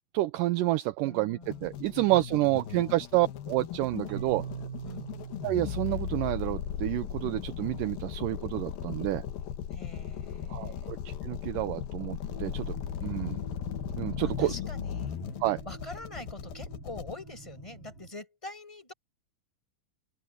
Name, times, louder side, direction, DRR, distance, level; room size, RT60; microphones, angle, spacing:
voice 1, 0.1-4.4 5.4-9.2 10.5-13.4 13.9-14.6 15.4-15.6, right 17 dB, 80° right, 2.1 m, -29 dB
voice 2, 1.0-3.0 4.8-5.1 9.7-10.9 13.1-13.5 14.2-15.2 15.7-18.9, left 2 dB, 10° left, 6.9 m, -45 dB
sound 1, 1.4-17.1, left 9 dB, 85° left, 3.2 m, -37 dB
Keyboard (musical), 4.1-7.8, right 9 dB, 60° right, 4.0 m, -43 dB
sound 2, 12.2-18.1, right 1 dB, 40° right, 6.0 m, -47 dB
open air
omnidirectional pair, 4.2 m